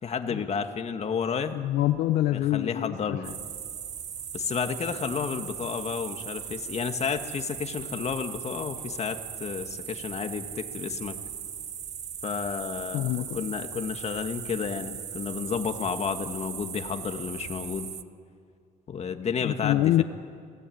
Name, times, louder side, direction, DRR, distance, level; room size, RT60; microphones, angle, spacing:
voice 1, 0.0-1.6 2.3-3.3 4.3-11.2 12.2-17.9 18.9-20.0, left 6 dB, 40° left, 7 dB, 2.0 m, -31 dB
voice 2, 1.5-3.2 12.9-13.4 19.4-20.0, left 14 dB, 85° left, 9 dB, 0.9 m, -25 dB
sound 1, 3.2-18.0, right 8 dB, 45° right, 0.9 m, -38 dB
29.5 x 17.5 x 9.5 m, 2.2 s
cardioid pair, 110°, 17 cm